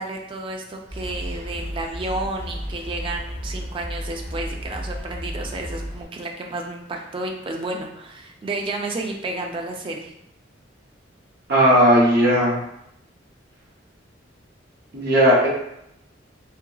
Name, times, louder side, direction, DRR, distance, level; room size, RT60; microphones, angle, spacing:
voice 1, 0.0-10.1, right 2 dB, 25° right, 1 dB, 0.3 m, -31 dB
sound 1, 0.9-6.0, equal, 20° left, 0.9 m, -33 dB
voice 2, 11.5-12.5 14.9-15.5, equal, 55° right, -5 dB, 0.7 m, -16 dB
2.8 x 2.6 x 2.3 m, 0.79 s
head